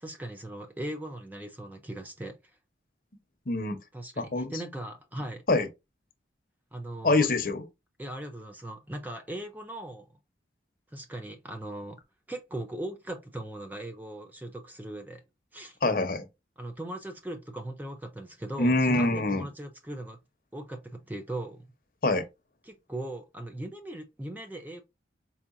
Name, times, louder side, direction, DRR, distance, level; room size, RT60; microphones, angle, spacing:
voice 1, 0.0-2.4 3.9-5.4 6.7-7.3 8.0-10.1 10.9-12.0 12.3-15.2 15.5-15.8 16.6-20.2 20.5-21.6 22.6-24.8, right 1 dB, 10° right, 0.4 m, -39 dB
voice 2, 3.5-3.8 4.2-4.5 5.5-5.7 7.0-7.7 15.8-16.2 18.6-19.4 22.0-22.2, left 2 dB, 50° left, 0.8 m, -25 dB
4.5 x 2.8 x 2.5 m
head